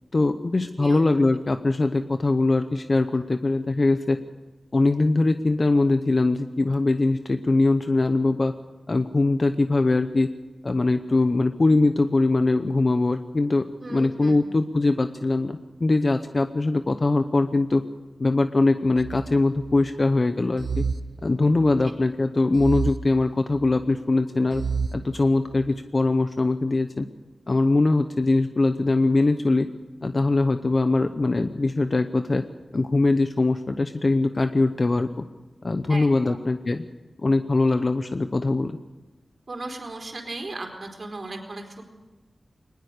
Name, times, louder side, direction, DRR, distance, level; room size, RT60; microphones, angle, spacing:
voice 1, 0.1-4.2 4.7-8.5 8.9-10.3 10.6-17.8 18.2-20.8 21.2-24.6 24.9-27.1 27.5-29.7 30.0-32.4 32.7-35.2 35.6-36.9 37.2-38.8, left 2 dB, 45° left, 9 dB, 0.8 m, -22 dB
voice 2, 13.8-14.3 35.9-36.4 39.5-41.8, right 2 dB, 55° right, 3 dB, 4.1 m, -36 dB
sound 1, 19.0-19.9 20.6-21.9 22.5-23.8 24.5-25.7, right 5 dB, 90° right, 0.6 m, -31 dB
20.5 x 20.0 x 6.6 m, 1.2 s
wide cardioid pair, 70°, 0 cm